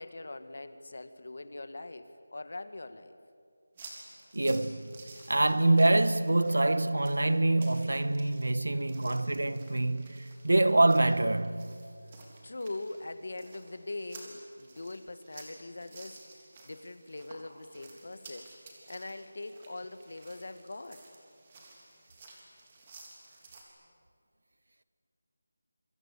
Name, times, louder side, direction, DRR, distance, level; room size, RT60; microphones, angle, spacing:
voice 1, 0.0-3.2 5.1-5.3 6.5-6.6 8.7-8.9 12.1-12.2 12.4-16.2 16.6-18.5 18.9-21.0, left 2 dB, 60° left, 2.0 m, -42 dB
sound 1, 3.8-23.6, right 3 dB, 20° right, 3.5 m, -54 dB
voice 2, 4.3-11.8, right 2 dB, 85° right, 1.5 m, -26 dB
28.5 x 24.5 x 8.4 m
figure-of-eight pair, 175°, 0 cm